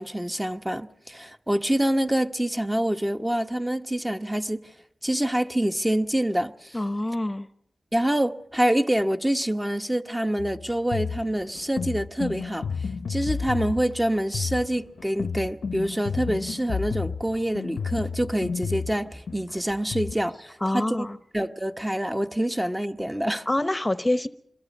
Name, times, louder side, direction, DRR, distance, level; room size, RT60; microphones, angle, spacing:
voice 1, 0.0-4.6 5.0-6.8 7.9-12.7 13.1-21.1 21.3-23.4, right 1 dB, 10° right, 1.2 m, -26 dB
voice 2, 6.7-7.5 20.6-21.2 23.5-24.3, left 1 dB, 20° left, 1.0 m, -26 dB
sound 1, 10.4-20.1, left 5 dB, 85° left, 0.8 m, -31 dB
26.5 x 22.0 x 5.4 m
cardioid pair, 45°, 0 cm